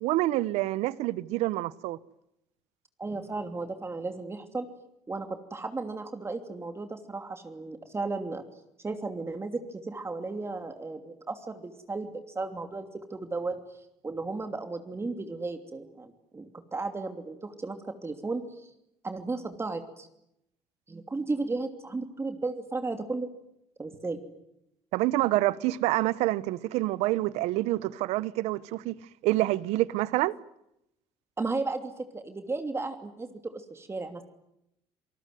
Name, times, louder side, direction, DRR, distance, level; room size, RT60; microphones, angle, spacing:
voice 1, 0.0-2.0 24.9-28.9 29.2-30.3, right 17 dB, 80° right, 1.0 m, -27 dB
voice 2, 3.0-4.7 5.1-8.4 8.8-13.6 14.0-17.8 18.0-18.7 19.0-20.1 20.9-23.3 23.8-24.2 31.4-34.3, right 3 dB, 25° right, 2.9 m, -34 dB
27.5 x 19.0 x 9.5 m
supercardioid pair, 85°, 11 cm